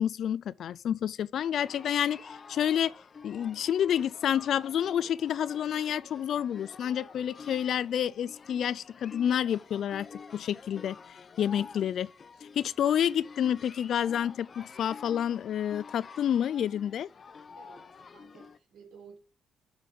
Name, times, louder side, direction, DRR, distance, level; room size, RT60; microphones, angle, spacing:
voice 1, 0.0-2.9 3.2-11.0 11.4-12.1 12.6-17.1, left 9 dB, 65° left, 0.4 m, -29 dB
sound 1, 1.5-18.6, left 5 dB, 40° left, 0.8 m, -49 dB
voice 2, 17.6-19.2, right 6 dB, 85° right, 3.7 m, -54 dB
7.7 x 5.4 x 5.6 m
cardioid pair, 90°, 0 cm